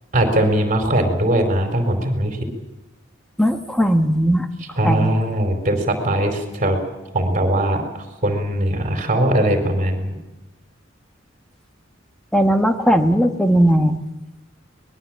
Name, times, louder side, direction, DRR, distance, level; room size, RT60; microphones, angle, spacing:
voice 1, 0.1-2.4 4.7-6.8 7.1-7.8 8.2-10.2, right 1 dB, 40° right, 5 dB, 4.5 m, -20 dB
voice 2, 3.4-4.5 4.8-5.2 12.3-14.0, equal, 5° left, 6 dB, 1.5 m, -17 dB
25.0 x 21.0 x 7.6 m, 1.0 s
head